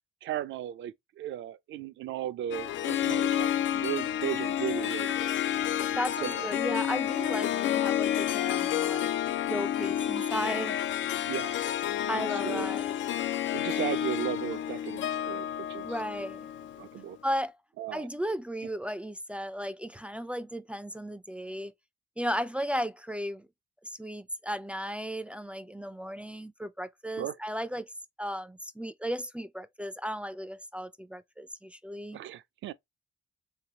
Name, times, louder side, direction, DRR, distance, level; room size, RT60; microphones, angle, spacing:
voice 1, 0.2-5.3 6.2-6.4 11.3-11.8 12.1-12.7 13.5-15.9 16.8-17.2 17.8-18.1 27.2-27.4 32.1-32.7, right 12 dB, 70° right, 0.5 m, -36 dB
Harp, 2.5-17.0, left 11 dB, 70° left, 0.4 m, -30 dB
voice 2, 5.9-9.1 9.5-10.8 12.1-13.0 15.8-16.5 17.2-17.5 17.9-21.7 22.2-23.5 23.8-27.9 28.2-32.2, equal, 5° right, 0.4 m, -35 dB
3.4 x 3.3 x 2.8 m
cardioid pair, 90°, 20 cm